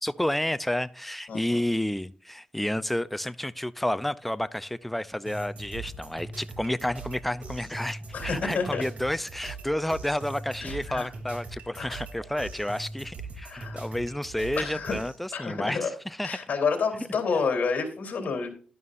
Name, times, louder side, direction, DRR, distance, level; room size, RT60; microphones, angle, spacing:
voice 1, 0.0-16.4, left 1 dB, 5° left, 0.4 m, -30 dB
voice 2, 1.3-1.6 8.1-8.8 10.6-11.1 11.8-12.0 13.4-13.8 14.6-14.9 15.3-15.9 16.2-18.5, left 5 dB, 60° left, 3.2 m, -29 dB
sound 1, 5.3-15.2, right 2 dB, 55° right, 2.8 m, -41 dB
11.5 x 11.0 x 2.5 m
wide cardioid pair, 115°, 3 cm